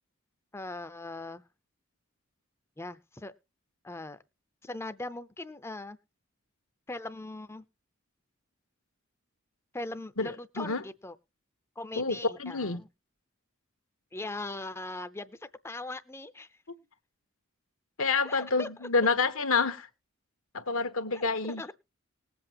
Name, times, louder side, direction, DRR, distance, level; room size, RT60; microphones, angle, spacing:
voice 1, 0.5-1.4 2.8-3.3 3.8-4.2 4.6-6.0 6.9-7.6 9.7-11.2 11.8-12.9 14.1-16.6 18.2-18.9 21.1-21.7, left 2 dB, 10° left, 0.5 m, -40 dB
voice 2, 10.2-10.8 12.0-12.8 18.0-19.9 20.5-21.6, left 4 dB, 80° left, 1.3 m, -28 dB
19.5 x 7.8 x 2.9 m
head